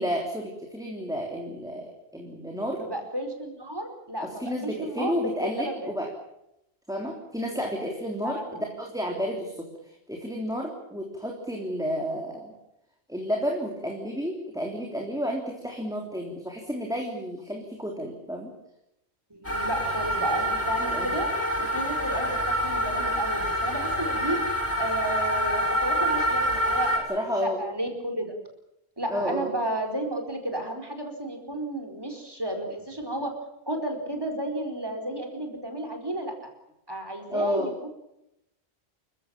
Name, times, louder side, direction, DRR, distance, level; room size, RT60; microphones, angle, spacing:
voice 1, 0.0-2.8 4.2-6.1 6.9-12.5 13.1-18.5 20.9-21.1 27.1-27.6 29.1-29.5 37.3-37.7, equal, 5° right, 0 dB, 3.5 m, -31 dB
voice 2, 2.8-5.9 8.2-8.6 19.3-21.3 21.6-24.4 24.8-28.3 29.0-33.3 33.7-36.3 36.9-37.9, right 1 dB, 20° right, 4 dB, 4.8 m, -32 dB
sound 1, 19.4-27.0, equal, 75° left, 6.8 m, -27 dB
28.5 x 15.0 x 8.9 m, 0.84 s
omnidirectional pair, 1.1 m